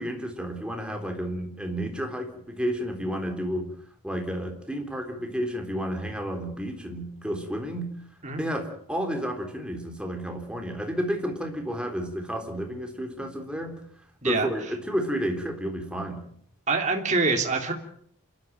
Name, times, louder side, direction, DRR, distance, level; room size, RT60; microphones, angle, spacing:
voice 1, 0.0-3.7 4.0-7.9 8.3-13.8 14.2-16.2, equal, 5° right, 3 dB, 3.7 m, -31 dB
voice 2, 16.7-17.7, right 3 dB, 35° right, 3 dB, 3.1 m, -25 dB
27.5 x 13.0 x 9.1 m, 0.65 s
head